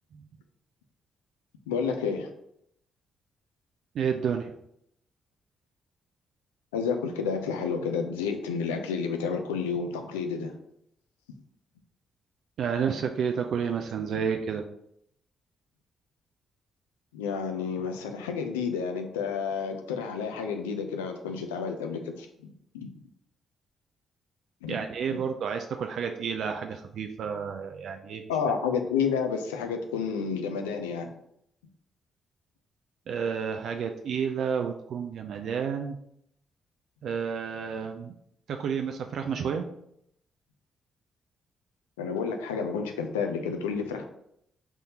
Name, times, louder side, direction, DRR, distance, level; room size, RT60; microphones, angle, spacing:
voice 1, 1.7-2.3 6.7-10.6 17.1-22.9 24.6-24.8 28.3-31.1 42.0-44.1, left 6 dB, 90° left, 5 dB, 0.4 m, -30 dB
voice 2, 3.9-4.5 12.6-14.6 24.7-28.2 33.1-36.0 37.0-38.1 38.5-39.6, right 7 dB, 65° right, 4 dB, 0.3 m, -30 dB
4.0 x 3.5 x 2.8 m, 0.73 s
hypercardioid pair, 45°, 0 cm